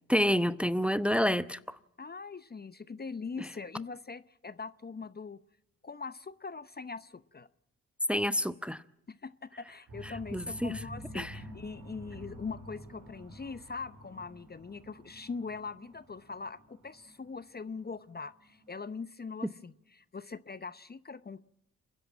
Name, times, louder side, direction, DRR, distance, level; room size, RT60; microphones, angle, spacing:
voice 1, 0.1-1.8 3.4-3.5 8.1-8.8 10.0-10.8 11.1-11.4, equal, 5° right, 0.9 m, -29 dB
voice 2, 2.0-5.4 5.8-7.5 9.1-21.4, left 4 dB, 30° left, 0.8 m, -42 dB
sound 1, 9.9-18.8, right 1 dB, 75° right, 6.6 m, -49 dB
29.5 x 10.5 x 8.6 m
supercardioid pair, 45°, 34 cm